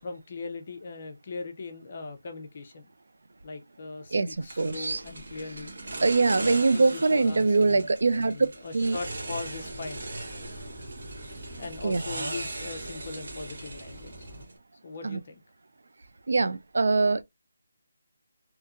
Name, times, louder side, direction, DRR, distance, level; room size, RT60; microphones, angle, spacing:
voice 1, 0.0-2.9 3.4-5.8 6.4-10.0 11.6-14.3 14.8-15.4, left 3 dB, 35° left, 0.6 m, -40 dB
voice 2, 4.1-5.0 6.0-8.3 8.7-9.0 11.8-12.0 15.0-15.2 16.3-17.2, right 3 dB, 65° right, 0.3 m, -23 dB
sound 1, 4.5-14.6, right 2 dB, 50° right, 0.9 m, -39 dB
sound 2, 8.9-14.4, right 1 dB, 35° right, 1.2 m, -44 dB
2.8 x 2.6 x 2.3 m
figure-of-eight pair, 175°, 0 cm